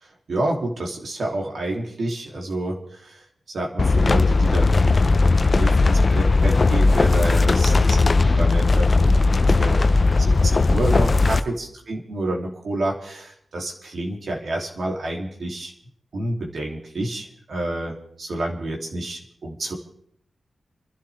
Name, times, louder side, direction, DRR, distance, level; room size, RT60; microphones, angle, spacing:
voice 1, 0.3-3.2 3.5-5.0 5.3-15.7 16.1-19.7, right 1 dB, 70° right, 0 dB, 3.0 m, -29 dB
sound 1, 3.8-11.4, left 3 dB, 45° left, 0.6 m, -17 dB
29.5 x 11.5 x 3.5 m, 0.64 s
cardioid pair, 70°, 0 cm